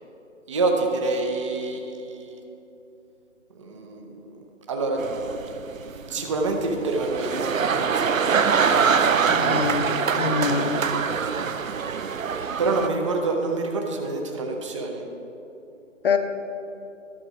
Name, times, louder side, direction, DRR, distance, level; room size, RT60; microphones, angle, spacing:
voice 1, 0.5-2.4 3.5-5.0 5.8-7.4 7.7-8.4 12.6-15.0, right 3 dB, 25° right, 2 dB, 0.6 m, -27 dB
sound 1, 5.0-12.9, right 6 dB, 85° right, 0.6 m, -24 dB
voice 2, 9.3-10.9 16.0-16.2, left 6 dB, 45° left, 7 dB, 0.8 m, -25 dB
11.0 x 6.9 x 5.0 m, 2.9 s
figure-of-eight pair, 145°, 39 cm